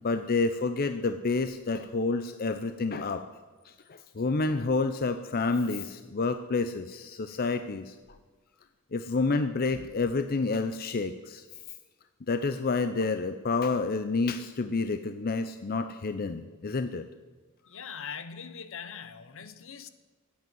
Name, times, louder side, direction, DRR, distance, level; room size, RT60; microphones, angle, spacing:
voice 1, 0.0-3.2 3.6-8.0 8.9-11.4 12.3-17.1, left 3 dB, 45° left, 10 dB, 0.6 m, -29 dB
voice 2, 17.6-19.9, left 7 dB, 65° left, 13 dB, 1.0 m, -41 dB
14.5 x 8.7 x 9.2 m, 1.3 s
head